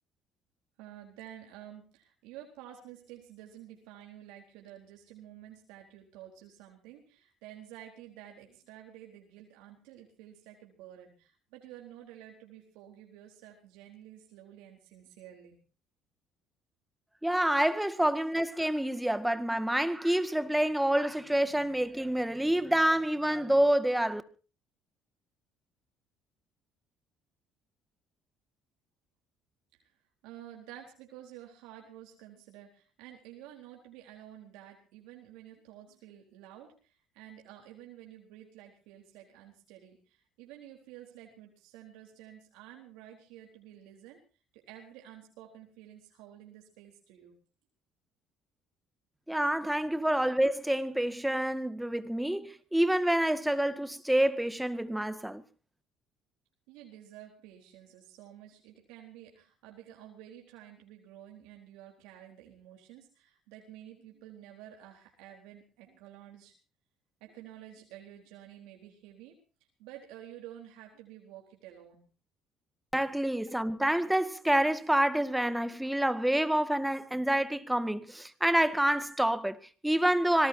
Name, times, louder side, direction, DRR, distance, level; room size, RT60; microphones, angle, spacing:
voice 1, 0.8-15.6 29.7-29.9 30.2-44.2 44.5-47.4 56.7-66.6 67.2-69.4 69.8-72.1, right 11 dB, 85° right, 4.0 m, -51 dB
voice 2, 17.2-24.2 49.3-55.4 72.9-80.5, right 1 dB, 5° right, 2.0 m, -27 dB
25.5 x 19.0 x 2.8 m
supercardioid pair, 85°, 0 cm